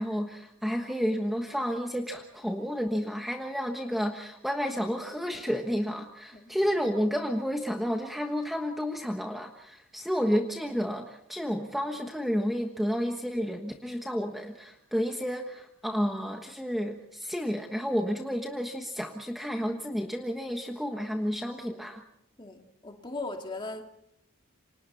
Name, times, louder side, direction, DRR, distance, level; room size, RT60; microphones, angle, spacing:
voice 1, 0.0-22.0, equal, ahead, 1.3 m, -31 dB
voice 2, 22.4-23.8, left 2 dB, 20° left, 2.2 m, -38 dB
29.0 x 25.5 x 4.2 m
head